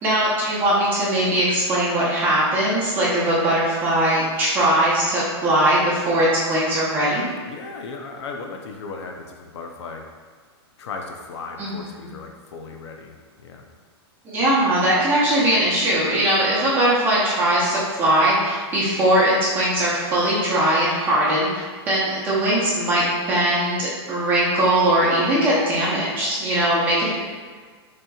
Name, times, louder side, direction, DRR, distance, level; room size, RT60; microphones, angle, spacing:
voice 1, 0.0-7.2 11.6-11.8 14.2-27.1, right 1 dB, 15° right, -8 dB, 0.8 m, -20 dB
voice 2, 7.4-10.0 10.8-13.7, left 4 dB, 90° left, 3 dB, 0.6 m, -36 dB
6.1 x 2.9 x 2.3 m, 1.5 s
supercardioid pair, 175°, 14 cm